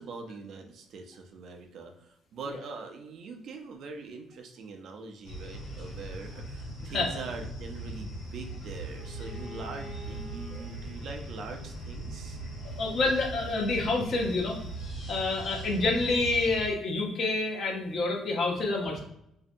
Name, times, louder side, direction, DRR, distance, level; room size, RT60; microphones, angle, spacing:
voice 1, 0.0-12.4, right 3 dB, 60° right, 4 dB, 0.4 m, -43 dB
sound 1, 5.2-16.7, right 1 dB, 75° left, 1.2 m, -40 dB
Bowed string instrument, 8.9-13.6, left 1 dB, ahead, 0.6 m, -50 dB
voice 2, 12.6-14.6 15.1-19.0, left 3 dB, 50° left, 1 dB, 0.6 m, -28 dB
2.6 x 2.1 x 2.5 m, 0.77 s
cardioid pair, 135°, 0 cm